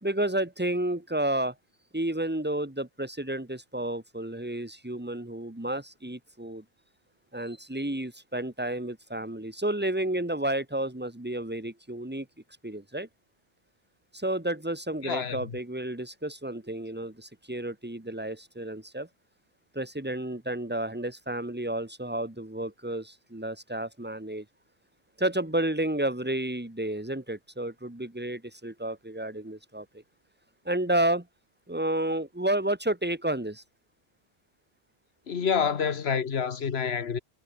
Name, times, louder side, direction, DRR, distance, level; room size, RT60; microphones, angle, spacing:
voice 1, 0.0-1.5 1.9-6.6 7.3-12.3 12.6-13.1 14.1-19.1 19.7-24.5 25.2-29.9 30.7-31.3 31.7-33.6, right 1 dB, 10° right, 2.1 m, -31 dB
voice 2, 15.0-15.6 35.3-37.2, left 6 dB, 70° left, 1.5 m, -28 dB
omnidirectional pair, 1.1 m